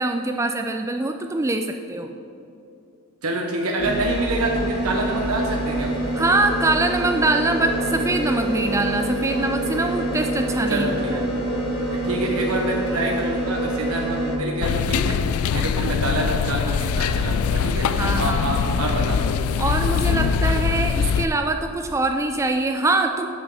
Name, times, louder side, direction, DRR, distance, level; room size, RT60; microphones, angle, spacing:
voice 1, 0.0-2.1 6.2-11.2 18.0-18.8 19.6-23.3, right 2 dB, 15° right, 5 dB, 0.3 m, -23 dB
voice 2, 3.2-6.1 10.7-11.1 11.9-17.9 18.2-19.2, right 1 dB, 80° right, 0 dB, 1.0 m, -27 dB
sound 1, 3.8-14.4, right 1 dB, 50° left, 2.1 m, -26 dB
sound 2, 14.6-21.3, left 6 dB, 75° left, 0.3 m, -22 dB
7.6 x 6.0 x 6.9 m, 2.7 s
head